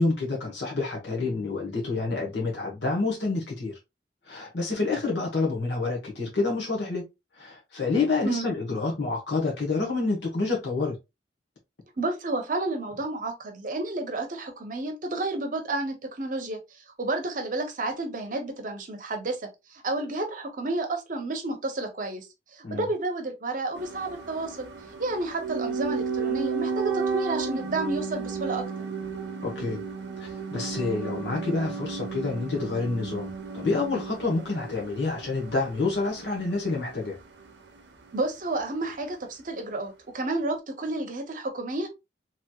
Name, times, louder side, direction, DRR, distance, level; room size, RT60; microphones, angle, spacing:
voice 1, 0.0-3.7 4.3-7.1 7.3-11.0 22.6-22.8 29.4-29.8 30.2-37.2, left 3 dB, 85° left, 1.1 m, -28 dB
voice 2, 12.0-16.6 17.0-19.4 19.7-24.7 25.0-28.6 38.1-41.9, right 2 dB, 50° right, 0.7 m, -31 dB
sound 1, 23.7-37.8 38.1-38.2, right 5 dB, 90° right, 0.7 m, -33 dB
3.1 x 2.9 x 2.3 m
head